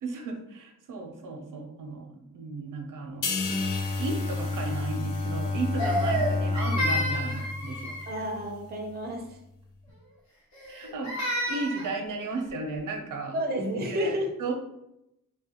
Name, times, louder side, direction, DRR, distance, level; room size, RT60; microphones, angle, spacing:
voice 1, 0.0-3.3 4.0-8.1 10.7-13.4 13.9-14.5, right 3 dB, 85° right, 2 dB, 0.6 m, -35 dB
sound 1, 3.2-6.8 7.1-7.4, left 5 dB, 80° left, 0.5 m, -37 dB
Bowed string instrument, 3.2-8.5, left 3 dB, 25° left, 0.5 m, -30 dB
Crying sobbing, 5.8-8.3 10.5-12.0, equal, 65° left, 1.0 m, -30 dB
voice 2, 8.1-9.4 13.3-14.5, equal, 30° right, 2 dB, 0.5 m, -31 dB
3.2 x 2.3 x 2.9 m, 0.84 s
wide cardioid pair, 130°, 31 cm